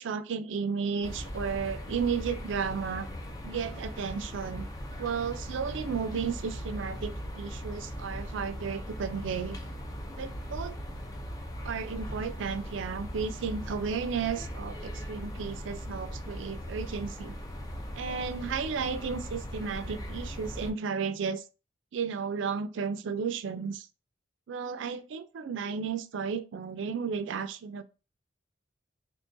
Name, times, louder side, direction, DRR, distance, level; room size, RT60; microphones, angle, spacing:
voice 1, 0.0-3.1 3.4-4.7 5.0-9.6 10.2-10.7 11.6-17.4 17.9-21.4 21.9-23.9 24.5-27.8, right 6 dB, 70° right, 0.4 m, -33 dB
sound 1, 1.0-20.7, equal, 20° left, 0.5 m, -39 dB
2.9 x 2.5 x 3.7 m
head